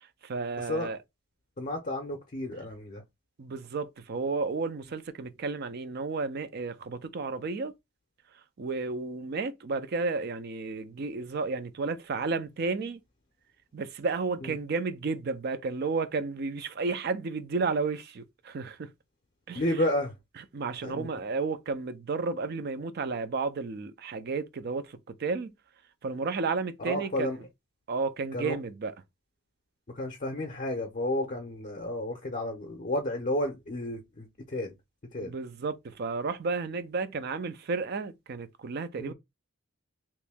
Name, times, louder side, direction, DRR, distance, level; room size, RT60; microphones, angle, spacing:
voice 1, 0.2-1.0 2.6-2.7 3.4-7.7 8.6-13.0 13.7-18.9 19.5-19.6 20.4-25.5 26.0-27.4 27.9-28.9 35.2-39.1, right 4 dB, 50° right, 0.4 m, -32 dB
voice 2, 1.6-3.0 14.4-14.5 19.5-20.1 20.8-21.1 26.8-27.4 28.3-28.5 29.9-34.7 35.1-35.3 39.0-39.1, left 1 dB, 40° left, 0.6 m, -32 dB
3.0 x 2.6 x 3.4 m
head